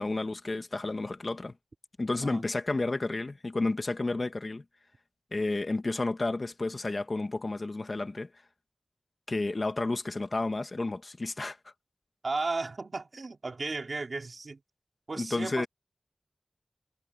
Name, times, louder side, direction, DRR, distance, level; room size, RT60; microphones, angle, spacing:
voice 1, 0.0-1.5 2.0-4.6 5.3-8.3 9.3-11.6 15.1-15.7, left 2 dB, 55° left, 1.8 m, -31 dB
voice 2, 12.2-14.6 15.1-15.7, right 3 dB, 75° right, 2.8 m, -34 dB
wide cardioid pair, 55°, 0 cm